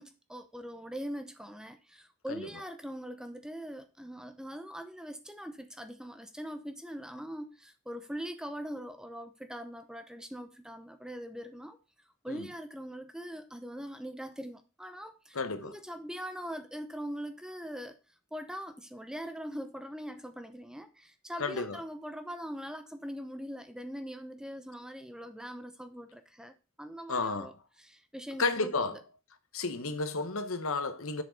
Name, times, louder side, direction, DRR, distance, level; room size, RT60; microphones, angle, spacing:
voice 1, 0.0-11.8 12.2-18.0 18.3-27.5 27.8-29.0, equal, 5° right, 0.8 m, -42 dB
voice 2, 15.3-15.7 21.4-21.8 27.1-27.5 28.4-29.0 29.5-31.2, left 3 dB, 70° left, 1.1 m, -32 dB
7.5 x 6.5 x 3.9 m
head